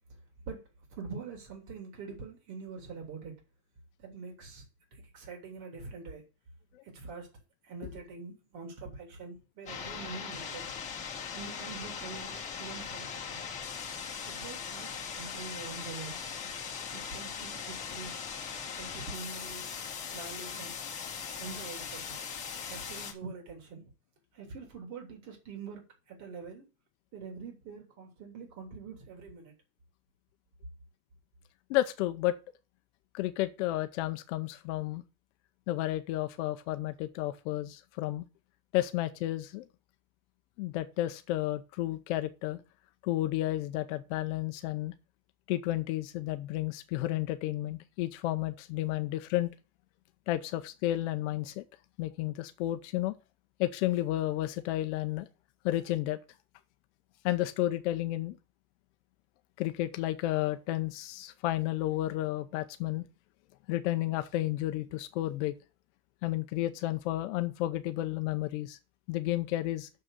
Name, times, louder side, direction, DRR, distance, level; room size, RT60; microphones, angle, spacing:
voice 1, 0.9-3.4 4.0-4.6 4.9-6.2 6.8-7.3 7.6-10.7 11.3-13.4 14.3-16.2 16.9-18.2 18.8-19.6 20.1-20.7 21.4-22.1 22.7-23.9 24.3-26.6 27.1-29.5, right 5 dB, 35° right, 3.2 m, -44 dB
sound 1, 9.7-23.1, left 6 dB, 15° left, 1.8 m, -40 dB
voice 2, 31.7-32.4 33.1-35.0 35.7-38.3 38.7-39.6 40.6-42.6 43.0-44.9 45.5-49.5 50.3-51.6 52.0-53.2 53.6-55.3 55.6-56.2 57.2-58.4 59.6-63.1 63.7-65.5 66.2-68.8 69.1-69.9, left 15 dB, 50° left, 0.8 m, -32 dB
6.7 x 6.3 x 6.5 m
supercardioid pair, 165°, 47 cm